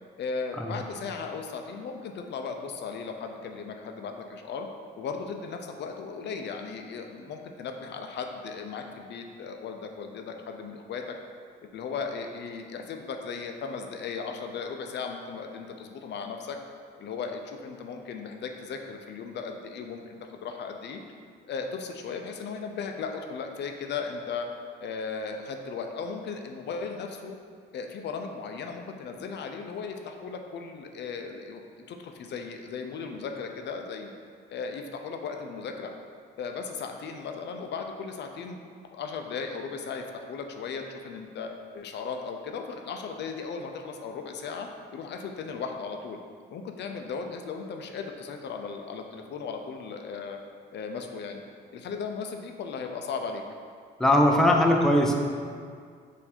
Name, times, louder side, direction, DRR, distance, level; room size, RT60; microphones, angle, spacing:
voice 1, 0.2-4.7 5.0-11.1 11.6-16.6 17.0-21.0 21.5-24.5 24.8-27.4 27.7-34.1 34.5-35.9 36.4-38.6 38.9-46.2 46.5-50.4 50.7-51.4 51.7-53.4, left 5 dB, 60° left, 4 dB, 0.4 m, -36 dB
voice 2, 54.0-55.2, left 1 dB, ahead, 1 dB, 0.4 m, -20 dB
4.3 x 2.6 x 4.2 m, 2.1 s
cardioid pair, 90°, 20 cm